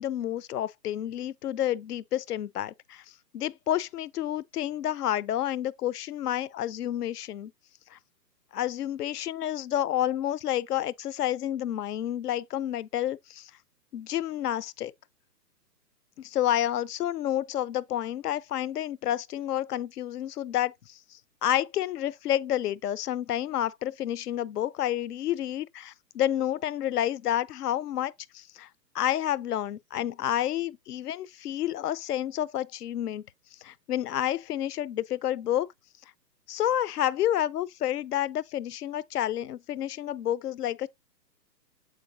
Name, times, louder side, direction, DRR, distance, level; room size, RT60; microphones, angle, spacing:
voice 1, 0.0-3.0 3.3-7.5 7.9-8.0 8.5-13.5 13.9-14.9 16.2-28.7 28.9-33.2 33.6-35.7 36.5-40.9, left 12 dB, 65° left, 0.5 m, -29 dB
7.8 x 4.8 x 2.6 m
hypercardioid pair, 170°, 50 cm